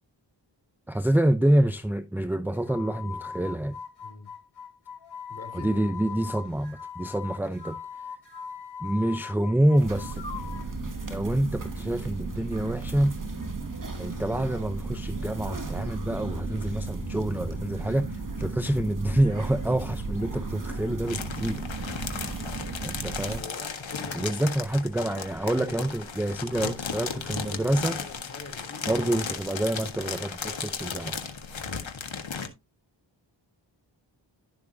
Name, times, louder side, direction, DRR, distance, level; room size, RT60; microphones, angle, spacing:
voice 1, 0.9-3.8 5.5-7.8 8.8-10.2 11.1-13.2 14.0-21.9 22.8-23.4 24.2-28.0 28.9-31.2, right 1 dB, 5° right, 0.7 m, -27 dB
sound 1, 2.5-10.7, left 6 dB, 55° left, 3.9 m, -41 dB
voice 2, 4.0-4.3 5.3-6.4 21.8-22.1 23.3-24.4 25.5-26.7 26.9-29.0 30.0-30.3, left 2 dB, 35° left, 3.5 m, -45 dB
sound 2, 9.7-23.4, right 3 dB, 45° right, 2.5 m, -34 dB
sound 3, 21.1-32.5, left 5 dB, 80° left, 1.7 m, -35 dB
12.0 x 7.0 x 2.8 m
wide cardioid pair, 55°, 45 cm